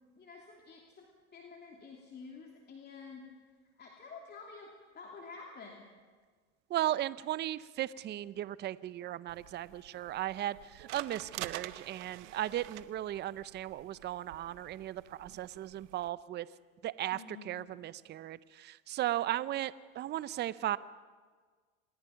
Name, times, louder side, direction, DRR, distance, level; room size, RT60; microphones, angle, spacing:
voice 1, 0.2-1.1 1.3-3.3 3.8-4.7 4.9-5.8 17.1-17.6, left 4 dB, 30° left, 0 dB, 2.8 m, -49 dB
voice 2, 6.7-16.5 16.8-20.8, right 13 dB, 30° right, 18 dB, 0.6 m, -36 dB
sound 1, 9.3-16.1, right 16 dB, 75° right, 0.9 m, -48 dB
26.5 x 20.0 x 5.8 m, 1.5 s
supercardioid pair, 115°, 35 cm